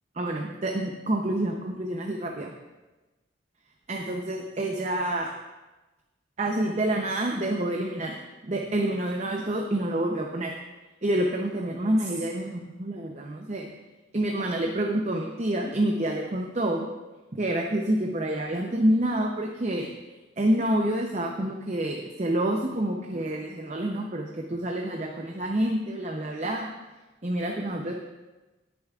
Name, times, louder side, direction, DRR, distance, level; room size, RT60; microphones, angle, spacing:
voice 1, 0.2-2.5 3.9-5.3 6.4-8.1 8.5-10.5 11.0-13.7 14.1-16.9 17.3-19.9 20.4-26.7 27.2-27.9, right 1 dB, 35° right, 1 dB, 0.7 m, -28 dB
19.0 x 7.1 x 2.4 m, 1.1 s
head